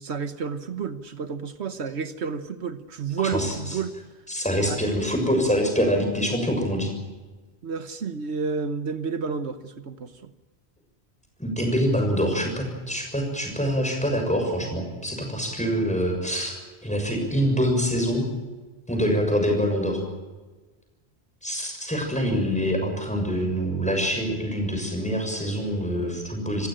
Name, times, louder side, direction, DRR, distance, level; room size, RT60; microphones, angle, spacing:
voice 1, 0.0-4.0 4.7-4.8 7.6-10.3, right 5 dB, 80° right, 10 dB, 1.4 m, -31 dB
voice 2, 3.3-3.8 4.3-6.9 11.4-18.3 18.9-20.0 21.4-26.7, equal, 5° left, 2 dB, 6.7 m, -25 dB
28.0 x 15.5 x 9.0 m, 1.3 s
omnidirectional pair, 1.1 m